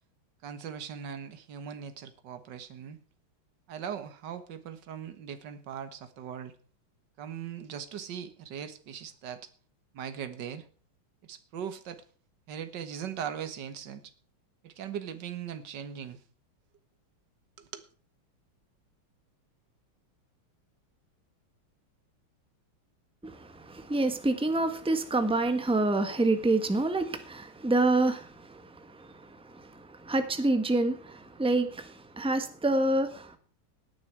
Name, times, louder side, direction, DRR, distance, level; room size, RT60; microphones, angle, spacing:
voice 1, 0.4-3.0 3.7-6.5 7.2-9.4 9.9-10.7 11.2-12.0 12.5-14.0 14.6-16.2 17.6-17.9, right 8 dB, 55° right, 10 dB, 1.9 m, -39 dB
voice 2, 23.2-33.4, right 2 dB, 5° right, 8 dB, 1.1 m, -28 dB
17.5 x 9.6 x 4.6 m, 0.42 s
omnidirectional pair, 2.4 m